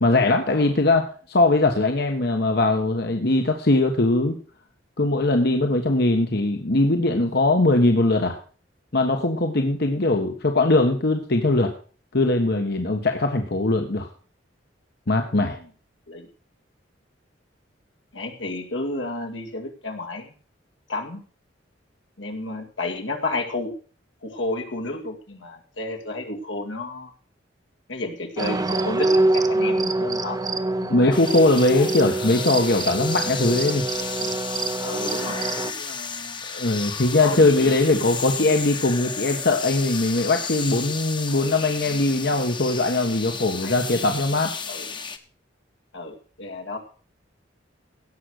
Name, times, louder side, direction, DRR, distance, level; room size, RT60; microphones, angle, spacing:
voice 1, 0.0-4.4 5.0-8.4 8.9-11.7 12.1-14.1 15.1-15.6 30.9-33.8 36.5-44.5, left 2 dB, 60° left, 4 dB, 1.3 m, -21 dB
voice 2, 18.1-20.3 20.9-21.2 22.2-23.7 24.2-27.1 27.9-30.4 31.2-31.9 33.5-34.4 34.8-36.4 37.2-38.6 39.4-39.5 41.3-41.6 43.6-44.0 44.7-44.8 45.9-46.8, left 2 dB, 80° left, 3 dB, 2.3 m, -32 dB
sound 1, 28.4-35.7, right 2 dB, 20° right, 0.7 m, -25 dB
sound 2, 31.1-45.2, left 5 dB, 25° left, 1.1 m, -33 dB
17.0 x 6.4 x 6.4 m, 0.41 s
head